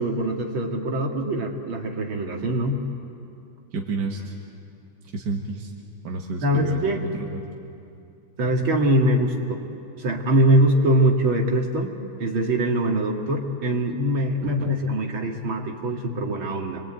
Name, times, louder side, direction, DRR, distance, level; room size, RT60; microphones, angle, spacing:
voice 1, 0.0-2.8 6.4-7.0 8.4-9.6 10.0-16.8, right 1 dB, 80° right, 1 dB, 3.0 m, -23 dB
voice 2, 3.7-4.3 5.1-5.7 6.0-7.4 14.4-14.5, right 3 dB, 55° right, 0 dB, 2.3 m, -30 dB
28.5 x 22.5 x 9.0 m, 2.5 s
omnidirectional pair, 2.2 m